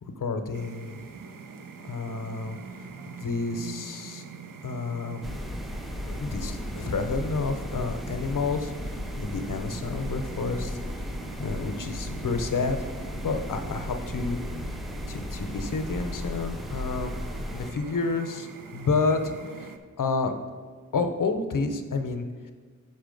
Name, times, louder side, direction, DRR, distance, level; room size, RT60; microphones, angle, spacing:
voice 1, 0.0-1.0 1.8-4.2 4.6-5.4 6.1-10.8 11.4-12.9 13.2-14.4 15.1-17.1 17.5-20.3 20.9-22.5, left 4 dB, 75° left, 7 dB, 0.7 m, -30 dB
sound 1, 0.5-19.8, right 5 dB, 80° right, 0.6 m, -43 dB
sound 2, 5.2-17.7, left 1 dB, ahead, 0.4 m, -35 dB
5.9 x 5.5 x 5.1 m, 1.5 s
wide cardioid pair, 90°, 32 cm